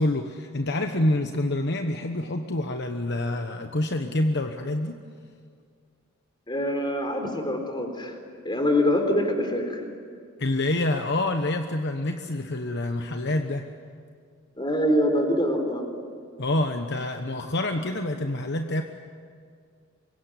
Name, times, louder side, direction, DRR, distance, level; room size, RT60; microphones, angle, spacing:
voice 1, 0.0-5.0 10.4-13.7 16.4-18.8, left 1 dB, 55° left, 5 dB, 1.2 m, -27 dB
voice 2, 6.5-8.1 8.4-9.8 14.6-15.9, left 1 dB, 20° left, 4 dB, 4.0 m, -24 dB
25.5 x 22.5 x 9.9 m, 2.1 s
head